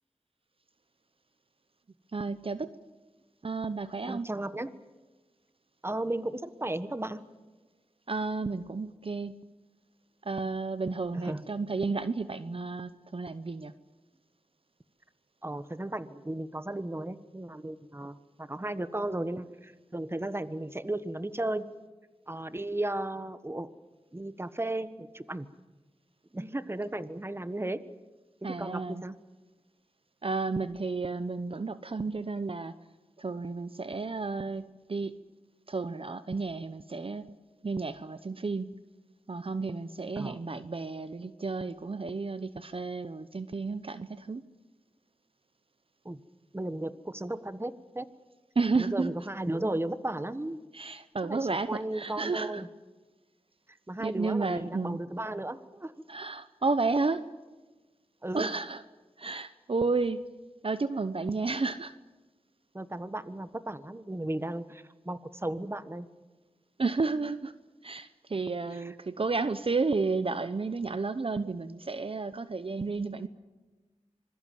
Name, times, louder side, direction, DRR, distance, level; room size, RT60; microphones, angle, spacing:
voice 1, 2.1-2.7 3.4-4.3 8.1-9.5 10.2-13.7 28.4-29.0 30.2-32.7 33.2-35.2 35.7-37.4 37.6-38.7 39.3-44.4 48.6-49.1 50.7-52.6 54.0-55.0 56.1-57.2 58.3-58.8 59.2-60.2 60.6-61.9 66.8-67.5 67.8-73.3, right 4 dB, 50° right, 12 dB, 0.9 m, -32 dB
voice 2, 4.1-4.8 5.8-7.2 11.1-11.5 15.4-21.7 22.3-23.7 24.1-25.5 26.3-27.8 28.4-29.1 40.2-40.4 46.0-46.2 46.5-48.1 48.8-50.6 51.2-52.7 53.9-55.9 58.2-58.5 62.7-66.1 68.7-68.9, right 1 dB, 20° right, 13 dB, 1.3 m, -35 dB
26.0 x 21.5 x 7.7 m, 1.2 s
wide cardioid pair, 55°, 12 cm